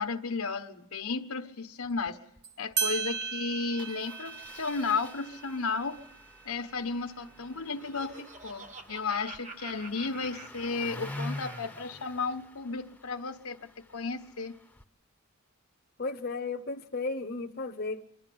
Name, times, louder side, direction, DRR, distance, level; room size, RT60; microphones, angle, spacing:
voice 1, 0.0-2.2 2.6-6.0 6.4-14.6, left 4 dB, 85° left, 7 dB, 1.3 m, -34 dB
Engine starting, 1.8-2.1 2.4-2.5 2.7-2.9 3.8-14.8, left 1 dB, 5° left, 0.7 m, -46 dB
sound 1, 2.4-2.5 2.8-7.9, right 6 dB, 55° right, 1.4 m, -37 dB
Laughter, 7.4-11.8, right 4 dB, 35° right, 1.2 m, -48 dB
voice 2, 16.0-18.1, left 3 dB, 45° left, 5 dB, 0.8 m, -34 dB
25.5 x 12.0 x 8.6 m, 0.80 s
head